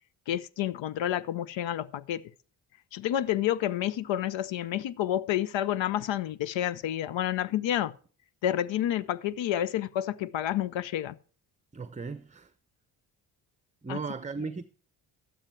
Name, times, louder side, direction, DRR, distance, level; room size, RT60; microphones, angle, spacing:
voice 1, 0.3-2.2 2.9-7.9 8.4-11.1 13.9-14.0, left 11 dB, 65° left, 0.6 m, -29 dB
voice 2, 11.7-12.5 13.8-14.6, right 4 dB, 15° right, 0.7 m, -36 dB
12.0 x 8.9 x 4.4 m
supercardioid pair, 60°, 50 cm